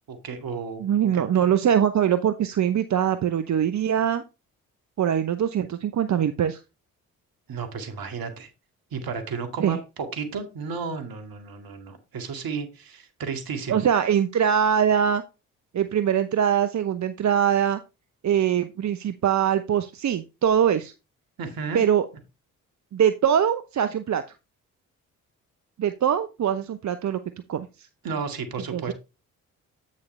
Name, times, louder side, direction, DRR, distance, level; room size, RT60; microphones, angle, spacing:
voice 1, 0.1-0.8 1.1-1.5 7.5-8.5 8.9-9.8 10.1-13.8 21.4-21.8 28.0-28.9, right 5 dB, 60° right, 7 dB, 2.2 m, -33 dB
voice 2, 0.8-4.2 5.0-6.6 9.6-9.8 13.7-15.2 15.7-17.8 18.2-20.9 21.7-22.0 22.9-24.2 25.8-27.2 27.5-27.9 28.7-28.9, right 9 dB, 45° right, 11 dB, 0.8 m, -22 dB
8.6 x 6.6 x 3.3 m, 0.26 s
hypercardioid pair, 45°, 40 cm